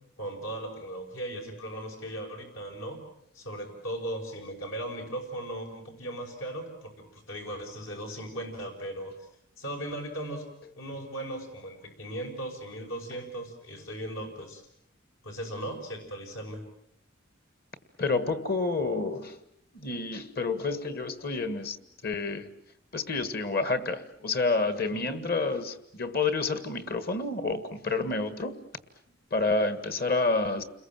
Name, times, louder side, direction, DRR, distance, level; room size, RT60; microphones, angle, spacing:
voice 1, 0.2-3.0 3.3-9.2 9.6-10.5 10.7-14.6 15.2-16.6 24.9-25.2, right 1 dB, 75° left, 5.9 m, -37 dB
voice 2, 18.0-19.4 19.7-21.8 22.0-22.5 22.9-28.6 29.3-30.6, left 3 dB, 50° left, 1.9 m, -29 dB
30.0 x 21.5 x 7.6 m
head